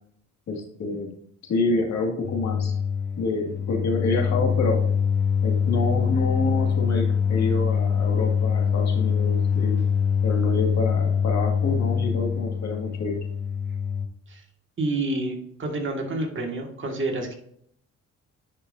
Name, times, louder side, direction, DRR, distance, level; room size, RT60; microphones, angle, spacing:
voice 1, 0.5-1.1 1.5-2.7 3.2-4.8 5.4-9.8 10.2-13.2, left 3 dB, 60° left, 0 dB, 2.1 m, -27 dB
sound 1, 2.2-14.1, left 7 dB, 40° left, 0.7 m, -24 dB
voice 2, 14.8-17.3, right 2 dB, 40° right, 2 dB, 1.9 m, -28 dB
9.6 x 5.2 x 2.7 m, 0.67 s
cardioid pair, 90°, 30 cm